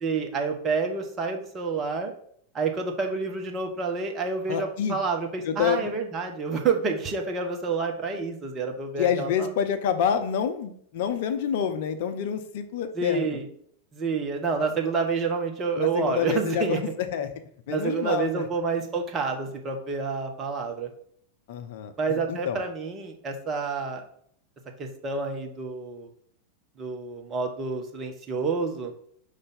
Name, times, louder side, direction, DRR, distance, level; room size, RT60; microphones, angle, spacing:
voice 1, 0.0-2.1 2.5-9.5 13.0-13.4 13.9-16.8 17.7-20.9 22.0-24.0 24.8-26.1 26.8-28.9, right 4 dB, 25° right, 3 dB, 1.0 m, -28 dB
voice 2, 4.5-5.0 5.4-5.9 9.0-13.4 15.8-17.3 17.7-18.5 21.5-22.6, left 8 dB, 50° left, 8 dB, 0.6 m, -28 dB
5.4 x 3.3 x 5.6 m, 0.65 s
figure-of-eight pair, 90°, 0 cm